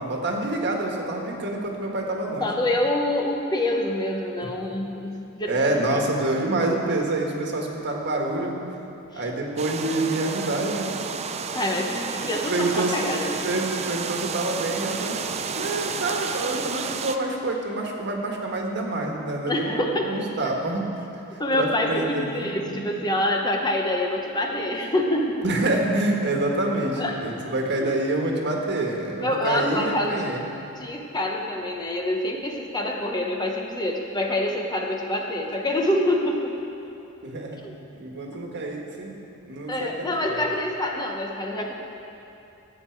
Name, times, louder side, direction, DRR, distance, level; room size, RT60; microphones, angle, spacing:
voice 1, 0.0-2.5 4.6-4.7 5.4-8.6 9.1-10.9 12.5-13.0 13.4-15.2 15.5-20.9 21.3-22.8 25.4-30.4 37.2-37.6 37.9-39.1 39.4-40.4, right 2 dB, 50° right, 1 dB, 1.5 m, -27 dB
voice 2, 2.4-6.0 9.1-9.2 11.5-13.4 19.5-20.1 21.4-25.4 27.0-27.2 27.8-27.9 29.2-30.2 30.8-36.5 37.6-37.7 39.7-41.7, left 1 dB, 20° left, 1 dB, 0.8 m, -26 dB
sound 1, 9.6-17.2, right 5 dB, 30° right, 0.4 m, -31 dB
15.5 x 8.6 x 4.6 m, 2.8 s
head